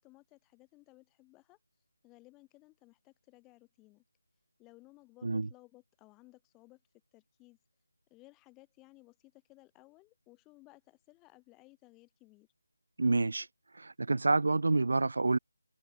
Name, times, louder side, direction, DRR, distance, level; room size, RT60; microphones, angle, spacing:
voice 1, 0.0-1.6 2.0-4.0 4.6-6.8 7.1-7.6 8.1-12.5, left 22 dB, 5° left, 6.0 m, -60 dB
voice 2, 13.0-13.5 13.7-15.4, right 3 dB, 55° right, 0.3 m, -28 dB
figure-of-eight pair, 175°, 0 cm